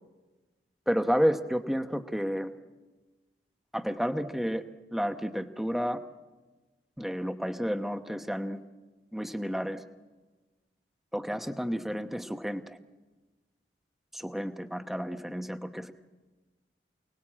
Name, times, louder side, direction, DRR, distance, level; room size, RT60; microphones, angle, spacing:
voice 1, 0.9-2.5 3.7-4.6 4.9-6.0 7.0-8.6 9.1-9.8 11.1-12.8 14.1-15.9, equal, ahead, 7 dB, 1.0 m, -31 dB
28.5 x 19.5 x 8.7 m, 1.3 s
head